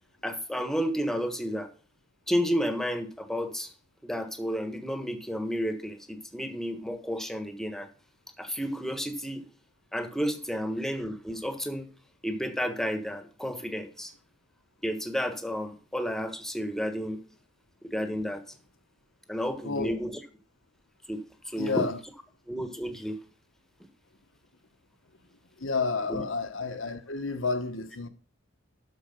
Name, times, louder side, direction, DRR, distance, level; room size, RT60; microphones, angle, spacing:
voice 1, 0.2-1.7 2.3-3.7 4.0-7.9 8.4-9.4 9.9-11.9 12.2-14.1 14.8-17.2 17.8-18.4 19.3-20.1 21.1-21.9 22.5-23.2 26.1-26.2, equal, ahead, 1.4 m, -31 dB
voice 2, 19.6-19.9 21.6-22.0 25.6-28.1, left 4 dB, 70° left, 1.3 m, -30 dB
12.5 x 4.9 x 6.7 m
head